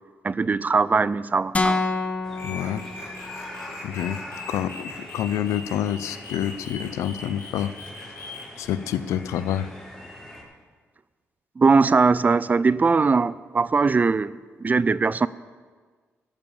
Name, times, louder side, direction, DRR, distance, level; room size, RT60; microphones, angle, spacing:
voice 1, 0.2-1.8 11.6-14.3 14.6-15.3, right 4 dB, 35° right, 18 dB, 0.4 m, -20 dB
sound 1, 1.5-3.6, left 3 dB, 25° left, 1.2 m, -27 dB
sound 2, 2.2-10.4, left 1 dB, 10° left, 4.5 m, -43 dB
sound 3, 2.3-8.6, left 2 dB, 65° left, 3.9 m, -40 dB
voice 2, 2.4-2.8 3.8-4.2 4.5-7.8 8.6-9.7, left 10 dB, 85° left, 14 dB, 0.5 m, -27 dB
13.5 x 7.3 x 7.2 m, 1.5 s
cardioid pair, 65°, 5 cm